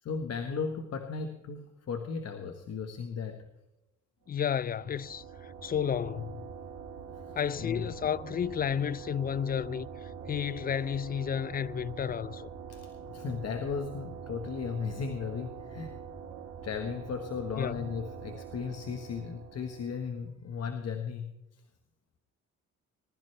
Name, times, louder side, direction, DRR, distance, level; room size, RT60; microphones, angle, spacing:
voice 1, 0.0-3.4 7.3-7.9 12.7-16.0 16.6-21.6, left 5 dB, 55° left, 1.4 m, -36 dB
voice 2, 4.3-5.2 5.6-6.4 7.4-9.9 10.3-12.5 17.6-17.9, left 8 dB, 30° left, 0.4 m, -31 dB
sound 1, 4.3-20.1, right 6 dB, 80° right, 1.7 m, -45 dB
20.0 x 12.5 x 3.3 m
cardioid pair, 90°, 30 cm